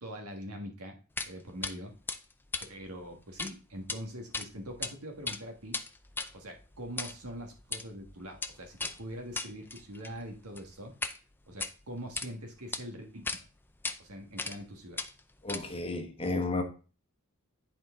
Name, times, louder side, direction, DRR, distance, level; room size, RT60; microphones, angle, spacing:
voice 1, 0.0-1.0 1.2-1.9 2.7-5.8 6.3-11.1 11.5-13.4 14.0-15.0, equal, 80° right, 1.7 m, -43 dB
sound 1, 1.2-1.3 1.6-1.7 2.1-3.5 3.8-4.0 4.3-4.9 5.2-11.2 11.5-12.3 12.7-12.8 13.3-13.4 13.8-14.0 14.4-14.7 15.0-15.9, left 3 dB, 10° left, 0.4 m, -37 dB
voice 2, 15.4-16.6, left 2 dB, 25° left, 1.1 m, -32 dB
10.5 x 4.5 x 3.7 m
head